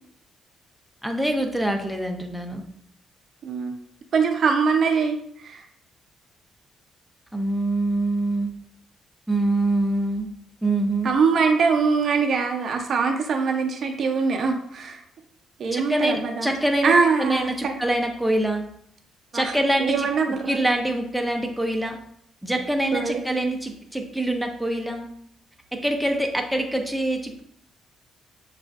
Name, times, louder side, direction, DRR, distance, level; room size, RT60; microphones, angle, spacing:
voice 1, 1.0-2.6 7.3-8.5 9.3-10.3 10.6-11.1 15.7-18.6 19.3-20.1 20.5-22.0 22.4-25.1 25.7-27.4, right 1 dB, ahead, 3 dB, 0.5 m, -25 dB
voice 2, 3.4-3.7 4.1-5.6 11.0-15.0 15.6-16.5 16.8-17.8 19.3-19.5 19.8-20.6 22.9-23.2, right 5 dB, 55° right, 3 dB, 0.5 m, -23 dB
6.1 x 2.4 x 2.4 m, 0.70 s
cardioid pair, 90°, 0 cm